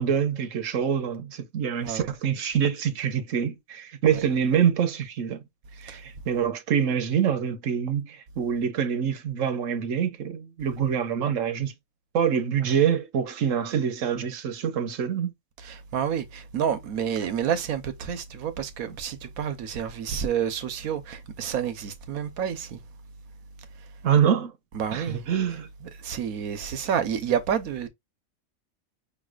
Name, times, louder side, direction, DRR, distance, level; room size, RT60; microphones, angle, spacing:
voice 1, 0.0-5.4 5.8-11.7 12.1-15.3 24.0-24.5 24.9-25.7, right 8 dB, 70° right, 1.1 m, -25 dB
voice 2, 15.6-22.8 23.8-23.9 24.7-25.3 25.8-27.9, right 8 dB, 85° right, 1.3 m, -29 dB
5.4 x 3.2 x 2.4 m
omnidirectional pair, 1.5 m